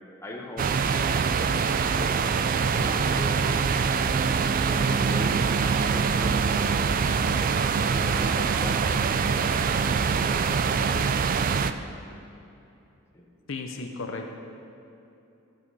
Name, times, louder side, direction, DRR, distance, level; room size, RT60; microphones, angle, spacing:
voice 1, 0.2-4.2 4.7-7.4 7.8-11.6 13.1-13.3, left 1 dB, 15° left, -2 dB, 1.2 m, -39 dB
sound 1, 0.6-11.7, right 5 dB, 40° right, 0.3 m, -24 dB
voice 2, 13.5-14.4, left 3 dB, 65° left, 3 dB, 0.7 m, -34 dB
12.0 x 8.0 x 4.9 m, 2.8 s
head